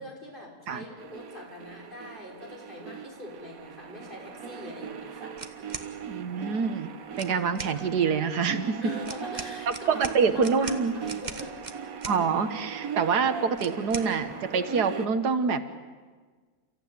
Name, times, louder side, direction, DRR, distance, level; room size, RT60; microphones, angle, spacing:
voice 1, 0.0-5.3 8.8-10.0 10.3-11.5, equal, 30° left, -2 dB, 6.0 m, -43 dB
sound 1, 1.0-15.1, right 7 dB, 60° right, 1.5 m, -39 dB
sound 2, 5.4-5.9 7.1-7.8 9.0-12.2 13.6-14.1, right 4 dB, 30° right, 1.3 m, -39 dB
voice 2, 6.1-8.9 9.7-10.9 12.1-15.6, right 5 dB, 80° right, 10 dB, 1.8 m, -26 dB
30.0 x 15.0 x 9.3 m, 1.5 s
omnidirectional pair, 1.7 m